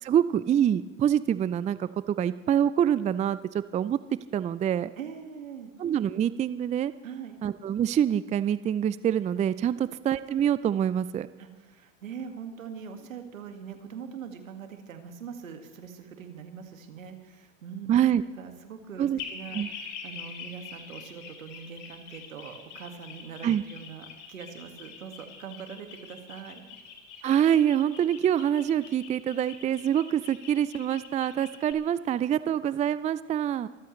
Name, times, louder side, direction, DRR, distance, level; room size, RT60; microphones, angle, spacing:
voice 1, 0.0-4.0 4.3-4.9 5.8-6.9 7.4-11.3 17.9-18.2 19.0-19.2 19.5-19.7 23.4-23.6 27.2-33.7, right 9 dB, 20° right, 16 dB, 0.4 m, -25 dB
voice 2, 5.0-5.7 7.0-7.4 9.7-10.0 11.4-18.0 18.4-26.6, right 7 dB, 85° right, 6 dB, 2.0 m, -42 dB
sound 1, 19.2-31.7, left 6 dB, 50° left, 3.4 m, -44 dB
25.0 x 14.0 x 3.2 m, 1.2 s
hypercardioid pair, 90°, 39 cm